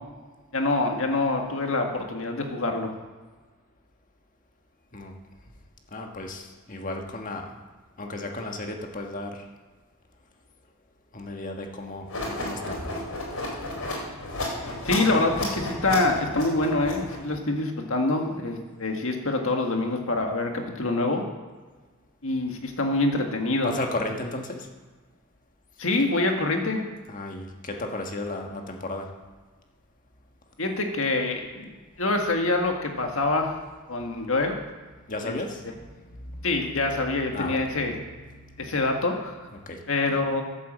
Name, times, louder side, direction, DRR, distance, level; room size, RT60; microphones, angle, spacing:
voice 1, 0.5-2.9 14.8-21.2 22.2-23.7 25.8-26.8 30.6-31.7 32.0-33.6 33.9-34.5 35.2-35.4 36.4-37.9 38.6-39.3 39.9-40.4, left 2 dB, 65° left, 3 dB, 1.8 m, -25 dB
voice 2, 5.9-7.5 8.0-9.4 11.1-12.9 23.6-24.7 27.1-29.1 35.1-36.5 37.3-38.7 39.5-39.8, left 2 dB, 35° left, 3 dB, 1.5 m, -34 dB
sound 1, 12.1-17.3, left 2 dB, 85° left, 4.7 m, -32 dB
12.0 x 8.4 x 7.5 m, 1.4 s
head